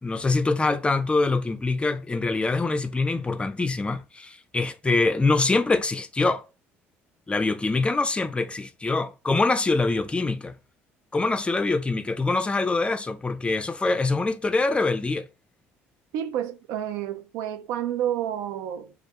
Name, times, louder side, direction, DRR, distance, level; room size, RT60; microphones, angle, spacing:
voice 1, 0.0-6.4 7.3-10.6 11.1-15.3, left 3 dB, 20° left, 0.4 m, -24 dB
voice 2, 16.1-18.9, right 10 dB, 75° right, 0.3 m, -30 dB
2.3 x 2.2 x 2.8 m
supercardioid pair, 75°, 6 cm